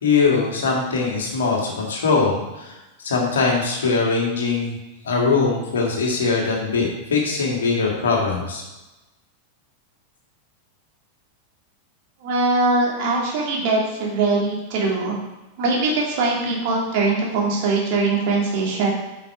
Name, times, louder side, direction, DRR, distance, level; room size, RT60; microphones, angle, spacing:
voice 1, 0.0-2.7 3.0-4.8 5.0-8.6, left 4 dB, 65° left, -1 dB, 2.2 m, -21 dB
voice 2, 12.2-15.2 15.6-18.9, right 3 dB, 50° right, -2 dB, 2.6 m, -21 dB
8.9 x 5.9 x 4.5 m, 1.0 s
figure-of-eight pair, 90°, 0 cm